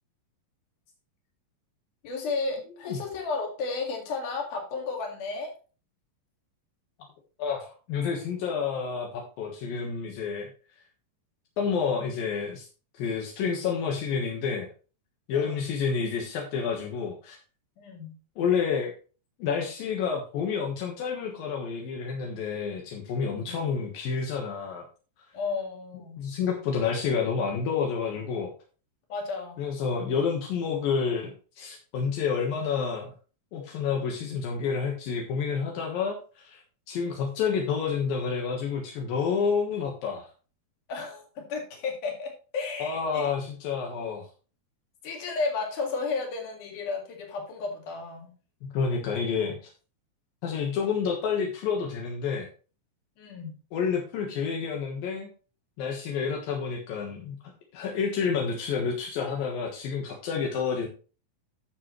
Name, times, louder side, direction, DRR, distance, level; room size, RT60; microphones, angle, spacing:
voice 1, 2.0-5.5 15.3-15.6 17.8-18.1 23.3-23.6 25.3-26.2 29.1-29.6 40.9-43.3 45.0-48.3 53.2-53.6, left 4 dB, 65° left, 1 dB, 3.6 m, -33 dB
voice 2, 7.4-10.5 11.6-12.7 12.9-14.7 15.3-17.4 18.4-18.9 19.4-24.8 26.2-28.5 29.6-33.1 33.5-36.6 36.9-40.3 42.8-44.3 48.6-49.6 50.4-52.5 53.7-55.3 55.8-57.4 57.7-60.9, left 6 dB, 80° left, 0 dB, 3.2 m, -29 dB
12.0 x 6.6 x 3.1 m, 0.38 s
omnidirectional pair, 4.0 m